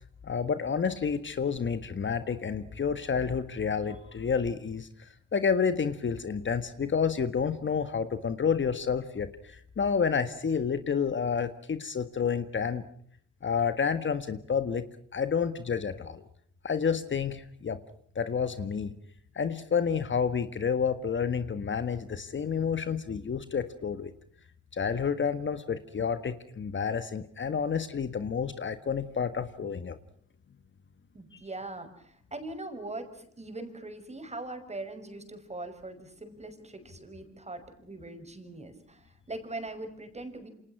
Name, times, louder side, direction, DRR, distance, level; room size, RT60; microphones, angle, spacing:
voice 1, 0.2-12.9 13.4-14.9 15.1-16.2 16.6-17.8 18.2-19.0 19.4-24.1 24.7-30.0, left 6 dB, 40° left, 10 dB, 1.8 m, -29 dB
voice 2, 31.1-40.5, right 2 dB, 20° right, 7 dB, 5.9 m, -41 dB
28.5 x 27.0 x 6.1 m, 0.62 s
cardioid pair, 90°, 30 cm